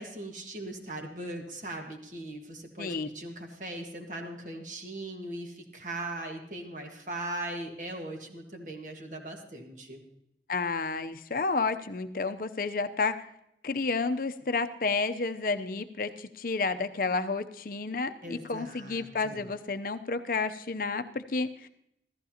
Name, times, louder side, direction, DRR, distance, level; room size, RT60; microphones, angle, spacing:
voice 1, 0.0-10.0 18.2-19.5, right 1 dB, 45° right, 3 dB, 1.5 m, -39 dB
voice 2, 2.8-3.1 10.5-13.2 13.6-21.7, left 4 dB, 50° left, 10 dB, 0.6 m, -31 dB
15.0 x 14.0 x 2.9 m, 0.77 s
head